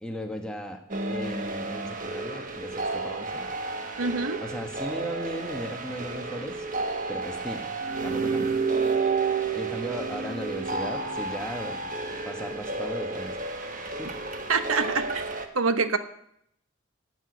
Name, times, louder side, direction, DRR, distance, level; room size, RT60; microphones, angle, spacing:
voice 1, 0.0-0.8 1.1-3.5 4.4-6.6 7.1-7.7 8.0-8.5 9.5-11.9 12.2-13.4 13.8-14.1, equal, 5° left, 3 dB, 1.4 m, -36 dB
sound 1, 0.9-15.5, right 4 dB, 40° right, 1.2 m, -31 dB
voice 2, 4.0-4.4 14.5-15.2 15.5-16.0, right 4 dB, 85° right, 10 dB, 1.1 m, -25 dB
15.0 x 6.2 x 9.7 m, 0.73 s
head